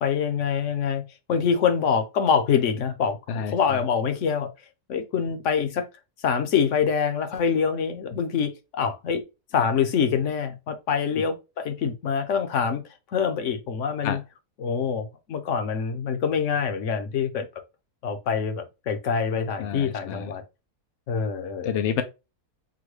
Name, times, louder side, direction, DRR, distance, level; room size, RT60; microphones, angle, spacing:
voice 1, 0.0-4.5 4.9-5.9 6.2-9.2 9.5-12.8 13.1-14.2 14.6-17.5 18.0-20.4 21.1-21.7, left 6 dB, 55° left, 1.0 m, -25 dB
voice 2, 19.6-20.3 21.6-22.0, left 8 dB, 75° left, 0.6 m, -28 dB
6.1 x 2.2 x 3.1 m
omnidirectional pair, 1.7 m